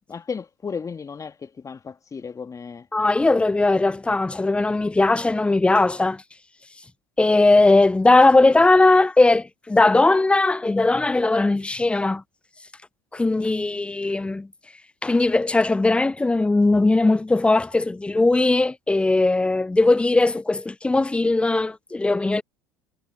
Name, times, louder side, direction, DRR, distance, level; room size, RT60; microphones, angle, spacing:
voice 1, 0.1-2.9, left 5 dB, 25° left, 2.4 m, -34 dB
voice 2, 2.9-6.2 7.2-12.2 13.1-14.5 15.0-22.4, left 2 dB, 10° left, 0.4 m, -19 dB
hypercardioid pair, 70°, 13 cm